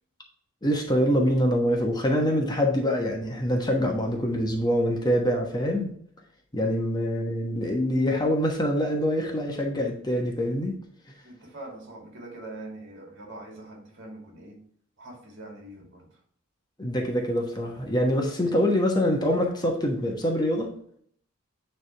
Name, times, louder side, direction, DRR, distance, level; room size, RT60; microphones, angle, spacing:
voice 1, 0.6-5.9 6.5-10.8 16.8-20.7, equal, 20° left, 1 dB, 1.1 m, -25 dB
voice 2, 11.2-14.6 15.0-16.2, right 2 dB, 60° right, 0 dB, 2.3 m, -43 dB
9.5 x 3.5 x 3.3 m, 0.63 s
head